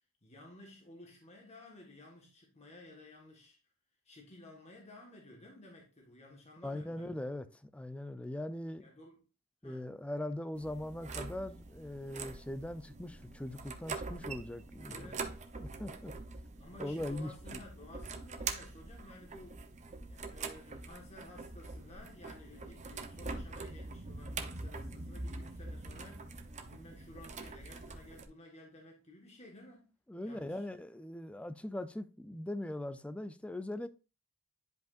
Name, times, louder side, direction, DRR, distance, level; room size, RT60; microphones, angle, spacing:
voice 1, 0.2-3.6 4.0-7.2 8.8-9.2 9.6-9.9 14.9-15.4 16.6-19.6 20.1-29.9 30.2-30.7, left 1 dB, 30° left, 1.5 m, -54 dB
voice 2, 6.6-8.9 9.6-15.2 15.6-16.1 16.8-17.6 30.1-33.9, left 1 dB, 5° left, 0.4 m, -41 dB
sound 1, 10.5-28.2, right 3 dB, 35° right, 0.8 m, -44 dB
10.5 x 5.1 x 2.5 m
head